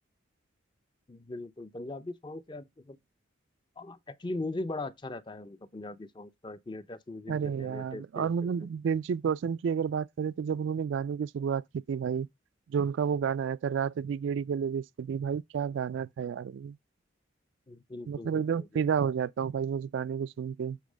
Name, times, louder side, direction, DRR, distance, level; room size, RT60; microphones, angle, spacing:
voice 1, 1.1-3.0 3.8-8.3 17.7-18.9, left 2 dB, 25° left, 0.5 m, -40 dB
voice 2, 7.3-12.3 12.7-16.8 18.1-20.8, right 7 dB, 65° right, 0.3 m, -31 dB
7.3 x 3.4 x 4.9 m
head